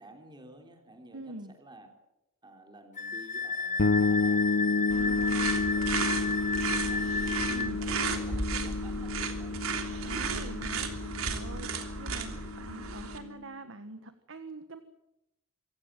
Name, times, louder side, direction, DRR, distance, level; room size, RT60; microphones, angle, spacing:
voice 1, 0.0-1.9 2.4-4.5 5.6-6.3 6.7-7.1 7.8-9.6, right 1 dB, 20° right, 4 dB, 3.4 m, -51 dB
voice 2, 1.1-1.5 4.9-5.6 7.5-7.8 10.0-10.9 11.2-14.8, right 2 dB, 65° right, 9 dB, 1.5 m, -44 dB
Wind instrument woodwind instrument, 3.0-7.7, left 3 dB, 35° left, 1.0 m, -33 dB
sound 1, 3.8-13.4, left 3 dB, 60° left, 0.9 m, -31 dB
sound 2, 4.9-13.2, right 4 dB, 80° right, 3.4 m, -34 dB
26.5 x 16.5 x 9.2 m, 0.90 s
head